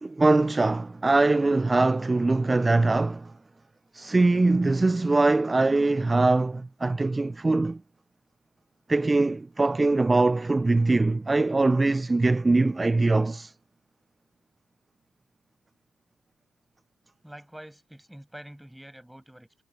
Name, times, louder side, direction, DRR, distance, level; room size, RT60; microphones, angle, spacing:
voice 1, 0.0-3.3 3.9-7.8 8.9-13.5, right 2 dB, 25° right, 0.7 m, -22 dB
voice 2, 17.2-19.6, right 1 dB, 5° right, 7.6 m, -46 dB
hypercardioid pair, 45°, 0 cm